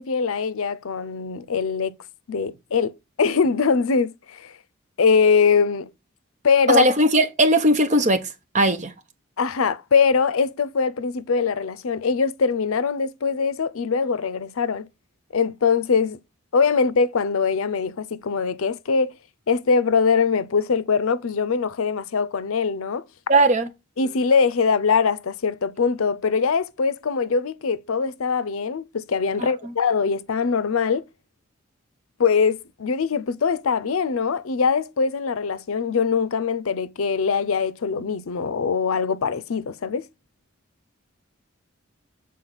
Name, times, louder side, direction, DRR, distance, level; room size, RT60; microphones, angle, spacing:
voice 1, 0.0-2.0 2.3-4.5 5.0-5.9 6.4-6.8 9.4-14.9 15.3-16.2 16.5-19.2 19.5-23.0 24.0-31.0 32.2-40.1, left 5 dB, 80° left, 0.6 m, -22 dB
voice 2, 6.7-8.9 23.3-23.7 29.4-29.7, right 1 dB, 35° right, 1.0 m, -19 dB
7.5 x 4.1 x 3.9 m
head